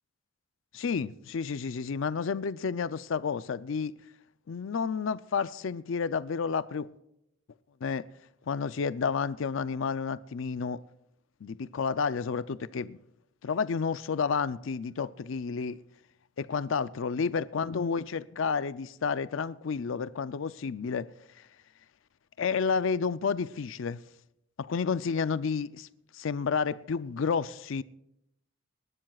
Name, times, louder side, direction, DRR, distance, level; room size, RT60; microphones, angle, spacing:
voice 1, 0.7-3.9 4.5-6.9 7.8-8.0 8.5-10.8 11.4-13.0 13.4-15.8 16.4-21.1 22.4-24.0 24.6-25.9 26.1-27.8, left 5 dB, 65° left, 15 dB, 0.5 m, -30 dB
26.5 x 12.5 x 2.4 m, 0.82 s
head